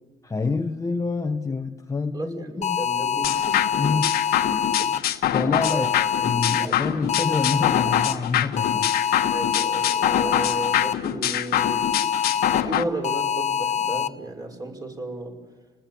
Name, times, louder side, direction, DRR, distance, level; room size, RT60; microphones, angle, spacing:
voice 1, 0.2-2.9 3.7-4.2 4.5-4.6 5.3-9.0, left 4 dB, 20° left, 6 dB, 1.2 m, -27 dB
voice 2, 2.1-3.7 4.8-4.9 5.7-5.9 6.4-6.8 9.3-15.4, right 2 dB, 20° right, 4 dB, 5.4 m, -34 dB
sound 1, 2.6-5.0 5.6-6.7 7.1-8.1 8.6-10.9 11.6-12.6 13.0-14.1, left 8 dB, 40° left, 1.0 m, -25 dB
sound 2, 3.2-12.8, left 11 dB, 65° left, 1.5 m, -25 dB
29.5 x 20.0 x 8.5 m, 1.4 s
cardioid pair, 110°, 17 cm